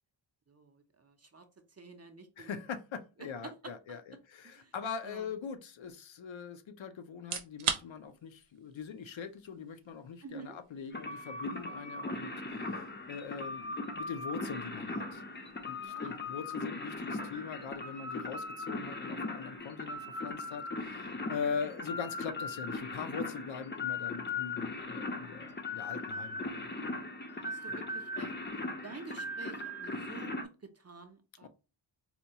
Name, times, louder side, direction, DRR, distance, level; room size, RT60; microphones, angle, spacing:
voice 1, 0.5-1.4 1.7-2.5 3.2-4.0 4.4-4.7 5.0-5.3 10.2-10.6 15.8-16.2 21.6-21.7 25.9-26.2 27.3-31.5, right 4 dB, 30° right, 0.5 m, -50 dB
voice 2, 2.4-15.2 15.6-26.4 31.4-31.5, left 6 dB, 70° left, 0.6 m, -42 dB
sound 1, 7.1-22.0, right 7 dB, 85° right, 0.7 m, -46 dB
sound 2, 10.9-30.4, left 2 dB, 25° left, 0.5 m, -39 dB
4.2 x 2.2 x 2.7 m
wide cardioid pair, 110°, 49 cm